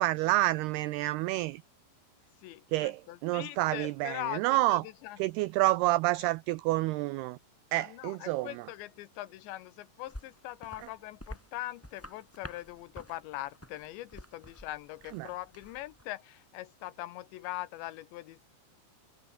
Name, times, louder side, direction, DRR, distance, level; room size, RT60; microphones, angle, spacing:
voice 1, 0.0-1.6 2.7-4.8 5.2-7.4 7.7-8.7 15.1-15.3, right 18 dB, 90° right, 2.2 m, -29 dB
voice 2, 2.4-5.2 7.7-18.4, left 16 dB, 80° left, 3.3 m, -42 dB
sound 1, 10.1-16.0, left 1 dB, 5° left, 2.1 m, -50 dB
omnidirectional pair, 5.2 m